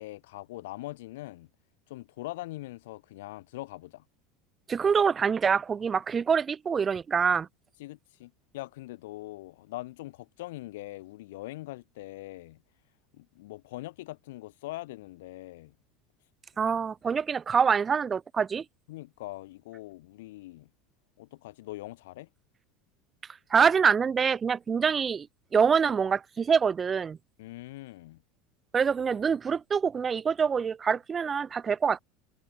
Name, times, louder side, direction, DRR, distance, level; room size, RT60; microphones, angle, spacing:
voice 1, 0.0-1.5 1.9-4.0 7.8-12.6 13.1-15.7 18.9-20.7 21.2-22.3 27.4-28.2, left 18 dB, 80° left, 3.3 m, -42 dB
voice 2, 4.7-7.5 16.6-18.6 23.5-25.3 25.5-27.2 28.7-32.0, right 6 dB, 30° right, 1.1 m, -25 dB
hypercardioid pair, 90°, 0 cm